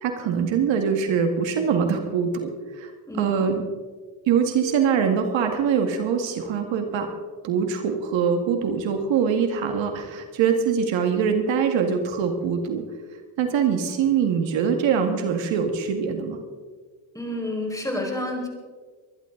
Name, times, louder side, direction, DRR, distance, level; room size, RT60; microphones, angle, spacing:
voice 1, 0.0-2.9 3.2-3.6 4.3-7.1 7.4-12.8 13.4-16.4, right 6 dB, 80° right, 5 dB, 2.0 m, -23 dB
voice 2, 3.1-3.4 17.1-18.5, left 1 dB, 5° left, 0 dB, 5.2 m, -29 dB
24.0 x 11.5 x 3.9 m, 1.5 s
cardioid pair, 95°, 45 cm